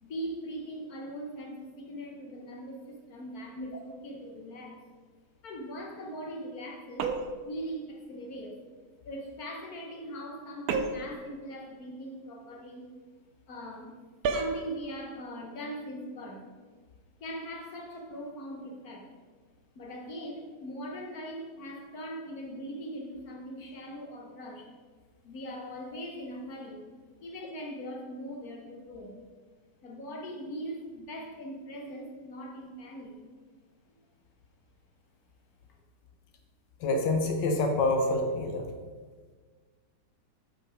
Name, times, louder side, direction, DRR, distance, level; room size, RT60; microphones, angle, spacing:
voice 1, 0.0-4.8 5.4-7.2 7.5-8.6 9.0-12.9 13.5-13.9 14.3-16.4 17.2-19.1 19.7-24.7 25.2-26.8 27.2-29.2 29.8-33.2 33.9-34.0, equal, 60° left, 0 dB, 1.4 m, -40 dB
sound 1, 7.0-7.5 10.7-11.2 14.2-14.6, right 4 dB, 65° right, 1.1 m, -30 dB
voice 2, 36.8-38.7, left 2 dB, 80° left, 4 dB, 1.4 m, -27 dB
8.0 x 6.0 x 4.9 m, 1.5 s
omnidirectional pair, 1.9 m